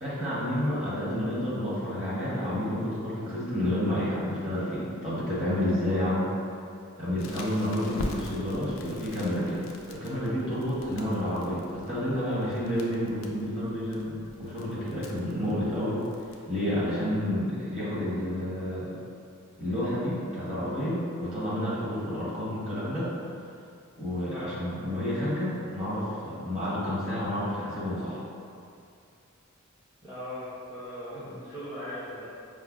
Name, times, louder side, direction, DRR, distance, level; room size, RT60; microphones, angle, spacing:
voice 1, 0.0-6.3 7.0-9.6 9.9-16.0 16.5-18.9 19.6-23.1 24.0-28.2 31.1-31.2, left 1 dB, 30° right, -10 dB, 1.0 m, -30 dB
Crackle, 7.2-16.3, left 1 dB, 60° left, 0.3 m, -44 dB
voice 2, 30.0-32.3, left 1 dB, 15° right, -14 dB, 0.6 m, -39 dB
4.8 x 2.1 x 2.3 m, 2.5 s
head